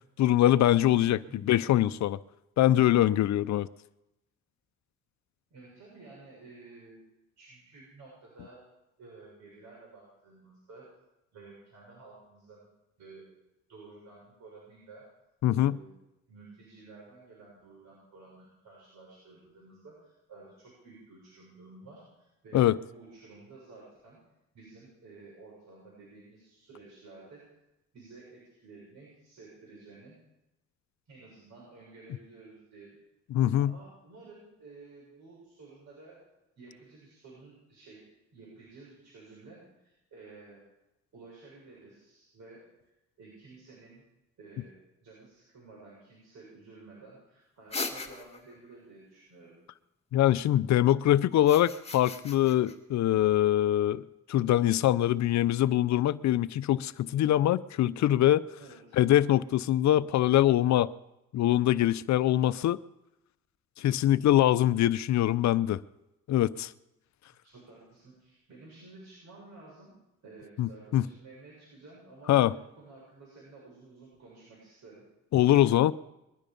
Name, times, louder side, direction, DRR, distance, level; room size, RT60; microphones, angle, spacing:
voice 1, 0.2-1.2 1.5-2.2 2.6-3.7 15.4-15.7 22.5-22.8 33.3-33.7 50.1-54.0 54.3-58.4 59.0-60.9 61.3-62.8 63.8-65.8 66.3-66.7 70.6-71.0 72.3-72.5 75.3-75.9, left 13 dB, 65° left, 0.6 m, -23 dB
voice 2, 1.1-1.4 5.5-7.0 7.4-8.6 9.0-10.9 11.3-12.7 13.0-13.3 13.7-15.1 15.5-15.9 16.3-24.2 24.5-27.4 27.9-30.2 31.1-32.9 33.6-36.2 36.6-38.0 38.3-40.6 41.1-42.9 43.2-44.0 44.4-49.5 58.6-59.0 67.4-69.9 70.2-75.0, right 3 dB, 65° right, 7.3 m, -52 dB
sound 1, 47.7-48.6 51.3-52.7, left 3 dB, 20° left, 2.0 m, -38 dB
21.5 x 12.0 x 5.3 m
cardioid pair, 90°, 30 cm